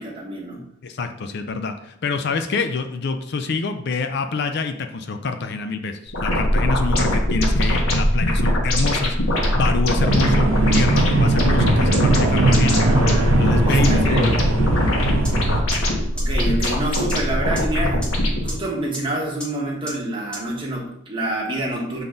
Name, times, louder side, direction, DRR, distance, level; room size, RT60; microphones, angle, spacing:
voice 1, 0.0-0.6 6.8-7.0 11.1-11.2 13.7-14.3 16.1-22.0, right 1 dB, 25° right, -3 dB, 1.4 m, -27 dB
voice 2, 0.8-12.8 13.4-14.4, left 4 dB, 50° left, 7 dB, 0.4 m, -26 dB
sound 1, 6.1-18.5, left 1 dB, 85° left, 1.4 m, -21 dB
sound 2, 10.0-15.6, right 2 dB, 75° right, 1.0 m, -20 dB
sound 3, 15.2-15.3 15.7-15.8 16.2-16.3 16.6-16.7 17.1-17.2 17.6-17.7 18.0-18.1 18.5-18.6 18.9-19.0 19.4-19.5 19.9-20.0 20.3-20.4, right 1 dB, 5° left, 1.4 m, -31 dB
7.1 x 3.9 x 3.8 m, 0.75 s
head